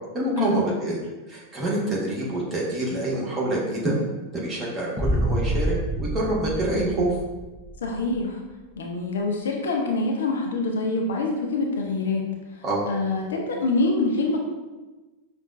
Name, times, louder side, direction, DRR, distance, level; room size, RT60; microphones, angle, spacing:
voice 1, 0.1-1.0 1.3-3.9 4.3-7.1 12.6-12.8, right 1 dB, 20° right, -5 dB, 1.2 m, -26 dB
sound 1, 5.0-7.9, right 1 dB, 5° left, 0.4 m, -27 dB
voice 2, 7.8-8.4 8.8-12.2 12.9-14.4, left 2 dB, 65° left, 1 dB, 0.5 m, -25 dB
5.6 x 2.2 x 2.5 m, 1.2 s
figure-of-eight pair, 90°, 0 cm